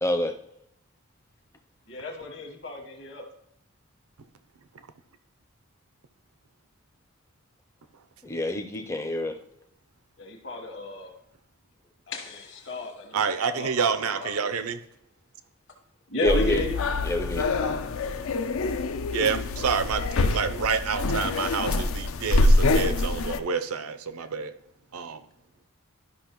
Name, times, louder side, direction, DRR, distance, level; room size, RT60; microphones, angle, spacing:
voice 1, 0.0-0.3 8.2-9.4 16.2-16.6 17.0-17.5, left 1 dB, 15° left, 5 dB, 0.5 m, -27 dB
voice 2, 1.9-3.3 10.2-11.1 12.1-13.2 13.5-13.7 14.2-14.5 16.1-16.8, left 2 dB, 55° left, 3 dB, 1.3 m, -33 dB
voice 3, 13.1-14.8 19.1-24.5 24.9-25.3, right 6 dB, 90° right, 10 dB, 0.6 m, -28 dB
sound 1, 16.3-23.4, left 2 dB, 75° left, 0.5 m, -25 dB
12.0 x 5.4 x 3.0 m, 0.78 s
head